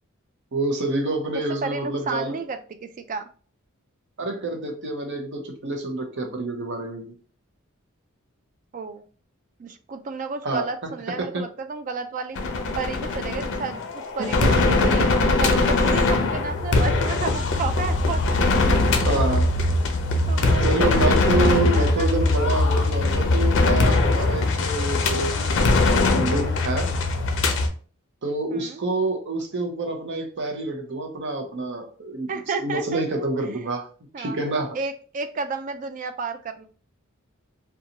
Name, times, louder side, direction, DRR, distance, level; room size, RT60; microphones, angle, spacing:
voice 1, 0.5-2.4 4.2-7.1 10.4-10.7 11.2-11.5 14.2-14.5 14.8-14.9 19.0-19.5 20.4-25.6 26.1-26.9 28.2-32.3 32.6-33.9 34.2-34.8, right 2 dB, 55° right, 4 dB, 0.7 m, -27 dB
voice 2, 1.6-3.3 8.7-9.1 9.6-12.4 12.8-15.1 15.4-18.4 20.3-22.3 28.5-28.8 32.3-33.2 34.1-34.4 34.7-36.6, right 4 dB, 40° right, 8 dB, 0.3 m, -32 dB
sound 1, 12.3-27.7, left 2 dB, 60° left, 0.5 m, -21 dB
2.6 x 2.3 x 2.8 m, 0.40 s
head